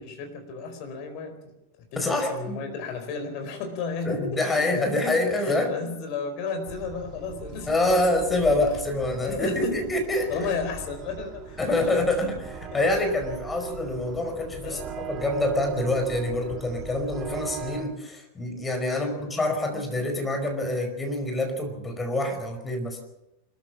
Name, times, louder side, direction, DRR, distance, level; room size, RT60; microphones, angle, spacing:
voice 1, 0.0-1.4 1.8-8.5 9.1-9.9 10.3-12.2 12.7-12.8 14.6-15.0 18.9-19.3, left 5 dB, 45° left, 6 dB, 4.5 m, -34 dB
voice 2, 2.0-2.6 4.0-5.7 7.7-10.5 11.6-23.0, left 2 dB, 15° left, 5 dB, 5.0 m, -26 dB
sound 1, 6.7-17.8, right 7 dB, 30° right, 2.6 m, -40 dB
25.5 x 15.0 x 7.4 m, 0.92 s
figure-of-eight pair, 90°, 0 cm